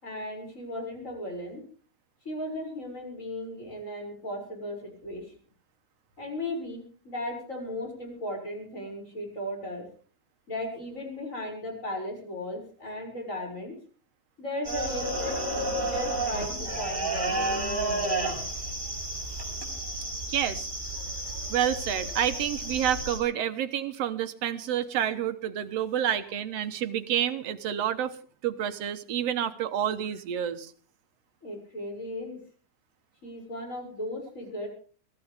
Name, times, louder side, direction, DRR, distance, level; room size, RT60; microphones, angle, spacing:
voice 1, 0.0-1.6 2.2-5.3 6.2-9.8 10.5-13.7 14.4-17.6 31.4-32.4 33.2-34.7, left 1 dB, 25° left, 1 dB, 6.9 m, -36 dB
sound 1, 14.6-23.2, right 2 dB, 15° right, 6.8 m, -31 dB
voice 2, 20.3-20.7 21.5-28.2 28.4-30.7, right 10 dB, 65° right, 10 dB, 2.1 m, -29 dB
23.5 x 15.5 x 3.5 m, 0.41 s
omnidirectional pair, 3.3 m